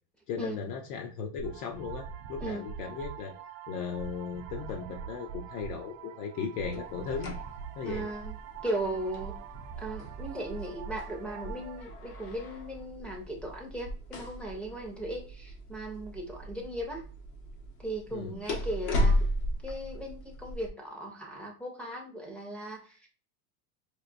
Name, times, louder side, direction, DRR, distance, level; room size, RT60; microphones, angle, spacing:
voice 1, 0.3-3.3 3.7-7.4 7.7-8.1 18.1-18.4, left 6 dB, 70° left, 2 dB, 0.7 m, -37 dB
sound 1, 1.4-11.8, right 8 dB, 60° right, 0.6 m, -43 dB
sound 2, 6.7-20.7, left 1 dB, 85° left, 1.3 m, -36 dB
voice 2, 7.8-8.4 8.6-9.4 9.8-17.0 17.8-19.3 19.6-23.1, right 1 dB, 5° left, 0 dB, 0.4 m, -37 dB
4.8 x 2.5 x 2.5 m, 0.39 s
supercardioid pair, 150°, 47 cm